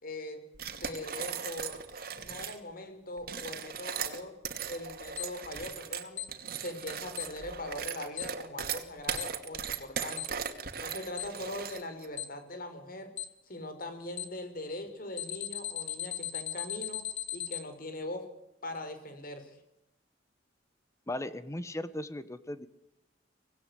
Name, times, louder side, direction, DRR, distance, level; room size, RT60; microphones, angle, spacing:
voice 1, 0.0-0.4 0.8-1.8 2.2-4.3 4.7-6.3 6.6-10.4 10.8-13.1 13.5-17.0 17.3-18.3 18.6-19.6, left 1 dB, 55° left, 8 dB, 5.3 m, -41 dB
sound 1, 0.5-2.6 3.2-12.1, right 7 dB, 55° right, 2.5 m, -38 dB
Alarm, 5.2-5.3 6.2-6.3 7.2-7.3 8.2-8.3 9.2-9.3 10.2-10.3 11.2-11.3 12.2-12.3 13.2-13.3 14.2-14.3 15.2-17.6, left 12 dB, 85° left, 1.9 m, -36 dB
voice 2, 21.1-22.7, left 1 dB, 15° left, 13 dB, 1.3 m, -37 dB
25.0 x 19.0 x 8.3 m, 0.87 s
head